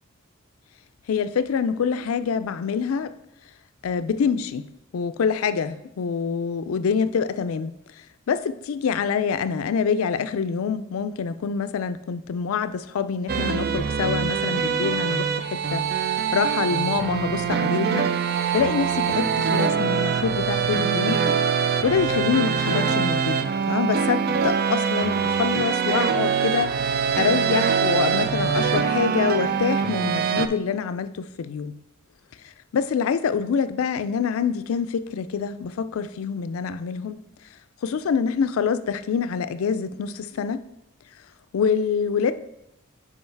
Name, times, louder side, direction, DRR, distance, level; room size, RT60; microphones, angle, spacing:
voice 1, 1.1-3.1 3.8-4.7 4.9-7.7 8.3-18.1 18.5-21.2 21.8-31.8 32.7-37.2 37.8-40.6 41.5-42.3, left 6 dB, 80° left, 13 dB, 0.4 m, -26 dB
sound 1, 13.3-30.5, right 6 dB, 45° right, 0.3 m, -23 dB
5.4 x 4.8 x 4.5 m, 0.84 s
head